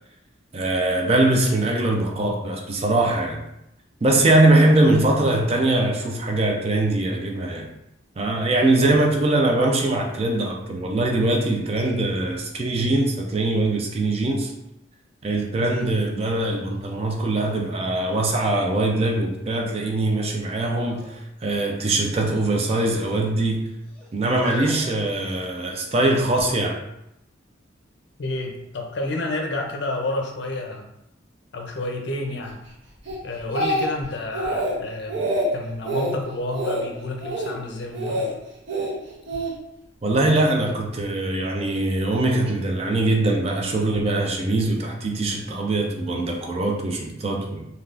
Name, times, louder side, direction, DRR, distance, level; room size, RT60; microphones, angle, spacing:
voice 1, 0.5-3.4 4.0-7.7 8.2-14.5 15.2-23.7 24.1-26.8 40.0-47.7, right 2 dB, 30° right, 1 dB, 0.4 m, -22 dB
sound 1, 16.8-16.9 17.4-18.9 19.5-20.0 20.8-21.2 21.5-21.6 22.5-23.1 23.8-25.9 26.6-26.7, left 1 dB, 10° left, 0.7 m, -39 dB
voice 2, 28.2-30.9 31.5-32.6 33.2-38.4, left 2 dB, 65° left, 2 dB, 0.5 m, -30 dB
Speech, 33.1-34.1 34.3-34.7 35.1-35.5 35.8-36.1 36.5-36.8 37.2-37.5 37.9-38.3 38.7-39.5 40.3-40.5, right 1 dB, 65° right, 0.7 m, -26 dB
3.4 x 2.3 x 2.4 m, 0.83 s
head